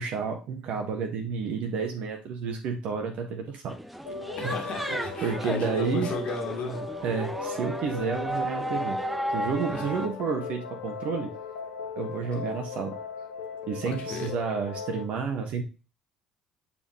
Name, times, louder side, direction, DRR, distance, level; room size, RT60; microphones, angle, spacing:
voice 1, 0.0-3.8 4.4-4.5 5.2-6.1 7.0-9.0 9.3-11.3 11.9-13.0 13.7-15.6, right 5 dB, 50° right, 1.2 m, -30 dB
sound 1, 3.7-10.1, right 1 dB, 5° right, 0.8 m, -34 dB
sound 2, 4.1-15.1, left 4 dB, 70° left, 1.2 m, -37 dB
voice 2, 4.4-6.9 9.7-10.1 13.8-14.3, left 3 dB, 45° left, 1.8 m, -35 dB
8.4 x 4.4 x 3.1 m
figure-of-eight pair, 55°, 3 cm